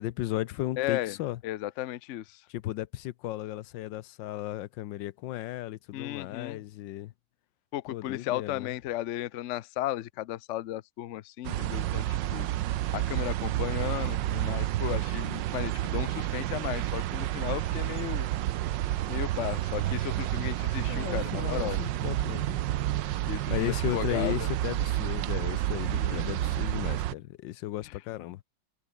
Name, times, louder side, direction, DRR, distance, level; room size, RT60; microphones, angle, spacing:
voice 1, 0.0-1.4 2.5-7.1 7.9-8.8 20.9-22.6 23.5-28.4, left 14 dB, 85° left, 1.4 m, -35 dB
voice 2, 0.8-1.1 1.4-2.4 5.9-6.6 7.7-12.5 12.9-18.3 19.1-21.8 23.2-24.5 26.1-26.2, left 14 dB, 70° left, 0.7 m, -35 dB
sound 1, 11.4-27.1, right 14 dB, 80° right, 1.4 m, -30 dB
omnidirectional pair, 2.0 m